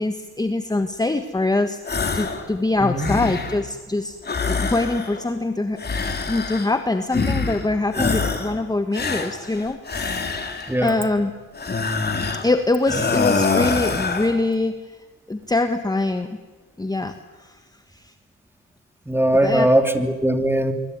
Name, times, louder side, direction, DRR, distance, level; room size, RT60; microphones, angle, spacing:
voice 1, 0.0-1.8 2.1-5.8 6.3-10.2 10.8-11.3 12.4-14.8 15.3-16.3 16.8-17.6 17.9-18.1 19.4-19.7, left 2 dB, 15° left, 8 dB, 1.5 m, -23 dB
sound 1, 1.9-2.5 2.8-3.7 4.2-5.3 5.8-6.8 7.1-7.7 7.9-8.6 8.9-10.8 11.6-12.5 12.8-14.4, left 4 dB, 35° left, 3.9 m, -25 dB
voice 2, 2.8-3.2 7.9-8.1 10.7-10.9 19.1-20.7, right 1 dB, 5° right, 7 dB, 3.2 m, -20 dB
25.0 x 24.0 x 9.7 m, 1.3 s
cardioid pair, 90°, 30 cm